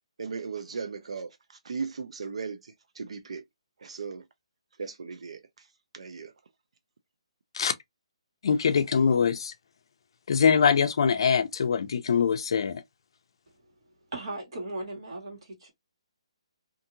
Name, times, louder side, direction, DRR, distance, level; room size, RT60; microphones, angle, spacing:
voice 1, 0.2-3.4 3.8-4.3 4.8-6.3, right 5 dB, 75° right, 0.4 m, -37 dB
voice 2, 8.4-9.5 10.3-12.8, left 6 dB, 50° left, 0.4 m, -23 dB
voice 3, 14.1-15.7, right 2 dB, 55° right, 1.6 m, -37 dB
2.7 x 2.6 x 2.6 m
hypercardioid pair, 170°, 3 cm